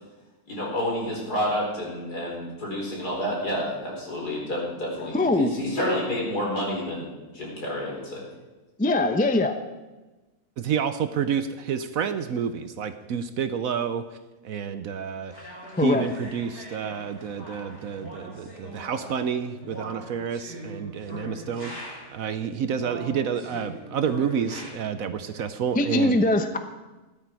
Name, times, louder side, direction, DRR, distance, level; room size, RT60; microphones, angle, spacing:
voice 1, 0.5-7.1 7.3-8.2, left 1 dB, 70° left, -3 dB, 5.3 m, -29 dB
voice 2, 5.1-5.5 8.8-9.6 15.7-16.1 25.7-26.6, left 2 dB, 10° left, 7 dB, 0.5 m, -22 dB
voice 3, 10.6-14.0 14.4-26.2, right 7 dB, 65° right, 10 dB, 1.0 m, -29 dB
sound 1, 15.3-22.3 22.8-24.7, equal, 40° left, 6.6 m, -41 dB
15.5 x 12.5 x 4.8 m, 1.1 s
omnidirectional pair, 1.7 m